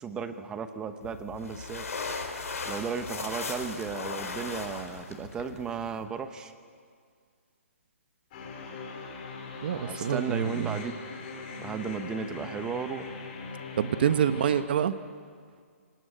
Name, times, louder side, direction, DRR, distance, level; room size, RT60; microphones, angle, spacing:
voice 1, 0.0-1.8 2.6-6.5 9.7-11.0 11.6-13.1, right 6 dB, 10° right, 9 dB, 0.9 m, -35 dB
sound 1, 1.0-6.0, left 4 dB, 90° left, 4.4 m, -37 dB
sound 2, 8.3-14.6, left 4 dB, 35° left, 4.7 m, -41 dB
voice 2, 9.6-10.8 13.8-15.0, right 9 dB, 45° right, 12 dB, 1.1 m, -26 dB
26.0 x 18.5 x 9.3 m, 2.1 s
hypercardioid pair, 165°, 8 cm